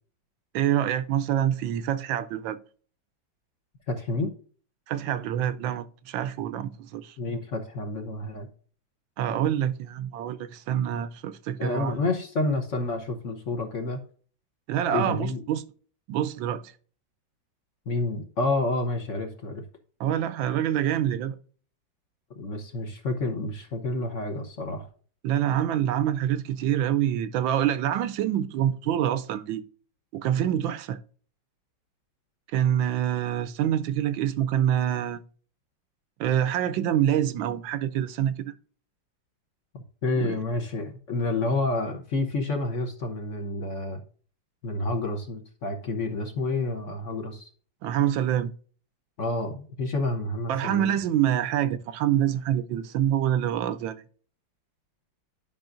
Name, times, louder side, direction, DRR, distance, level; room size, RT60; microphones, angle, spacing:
voice 1, 0.5-2.6 4.9-7.2 9.2-12.0 14.7-15.6 16.1-16.7 20.0-21.4 25.2-29.6 30.1-31.0 32.5-35.2 36.2-38.5 40.2-40.4 47.8-48.5 50.5-54.0, right 10 dB, 85° right, 1.4 m, -26 dB
voice 2, 3.9-4.3 7.2-8.5 11.6-14.0 14.9-15.4 17.9-19.6 22.4-24.9 39.7-44.0 44.6-47.5 49.2-51.0, left 2 dB, 45° left, 1.2 m, -29 dB
10.5 x 5.5 x 2.5 m
omnidirectional pair, 2.1 m